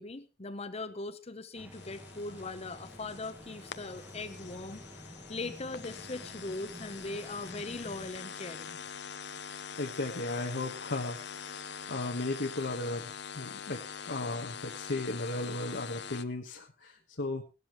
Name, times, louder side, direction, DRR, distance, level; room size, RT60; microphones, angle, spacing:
voice 1, 0.0-8.8, left 2 dB, 35° left, 8 dB, 0.9 m, -40 dB
sound 1, 1.5-8.1, equal, 10° right, 1.4 m, -50 dB
sound 2, 1.7-16.2, left 7 dB, 70° left, 0.8 m, -44 dB
voice 2, 9.8-17.4, left 2 dB, 90° left, 0 dB, 1.4 m, -36 dB
17.5 x 12.5 x 3.1 m, 0.28 s
head